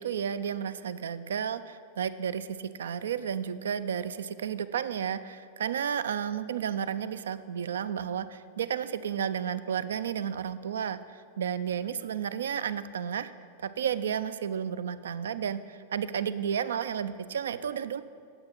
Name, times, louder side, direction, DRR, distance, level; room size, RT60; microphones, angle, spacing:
voice 1, 0.0-13.3 13.6-18.0, right 8 dB, 65° right, 14 dB, 0.3 m, -32 dB
8.7 x 7.6 x 4.4 m, 2.4 s
figure-of-eight pair, 90°, 0 cm